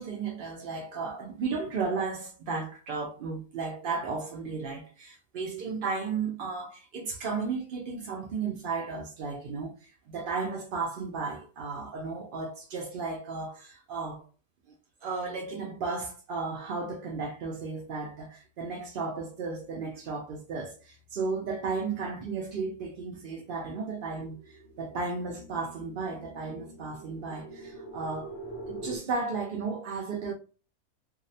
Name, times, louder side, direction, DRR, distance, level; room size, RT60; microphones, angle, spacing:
voice 1, 0.0-14.3 15.0-28.3 28.7-30.3, right 4 dB, 75° right, 0.5 m, -34 dB
sound 1, 20.8-29.0, right 2 dB, 55° left, 0.8 m, -46 dB
2.6 x 2.0 x 2.6 m
omnidirectional pair, 1.5 m